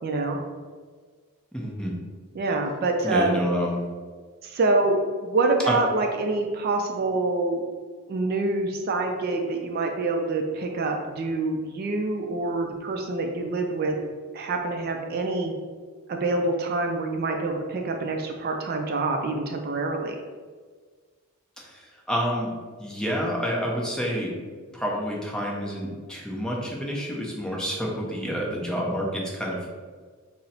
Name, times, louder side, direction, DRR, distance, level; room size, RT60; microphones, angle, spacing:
voice 1, 0.0-0.4 2.3-3.4 4.4-7.6 8.1-14.0 14.3-15.5 16.1-20.2, right 2 dB, 45° right, 3 dB, 0.3 m, -26 dB
voice 2, 1.5-1.9 3.0-3.8 5.7-5.8 21.6-22.5 22.8-24.3 24.7-29.7, equal, 5° left, -3 dB, 0.5 m, -28 dB
3.9 x 2.0 x 4.1 m, 1.6 s
head